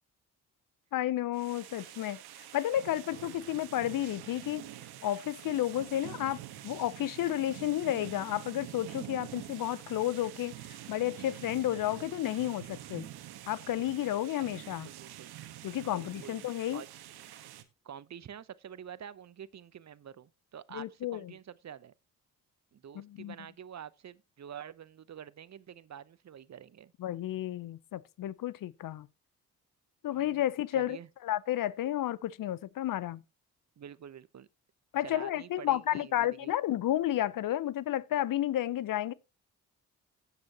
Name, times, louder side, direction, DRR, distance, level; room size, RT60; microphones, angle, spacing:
voice 1, 0.9-2.2 2.5-4.7 5.0-6.4 6.6-13.1 13.5-14.9 15.6-16.8 20.7-21.3 22.9-23.3 27.0-29.1 30.0-31.0 31.2-33.2 34.9-39.1, left 13 dB, 55° left, 0.7 m, -32 dB
sound 1, 1.3-17.6, right 13 dB, 70° right, 1.3 m, -46 dB
voice 2, 14.4-15.3 15.9-16.4 16.7-16.9 17.8-21.9 22.7-26.9 30.1-30.4 30.7-31.1 33.8-34.5 35.0-36.5, right 9 dB, 40° right, 0.8 m, -47 dB
17.0 x 7.0 x 2.9 m
hypercardioid pair, 40°, 40 cm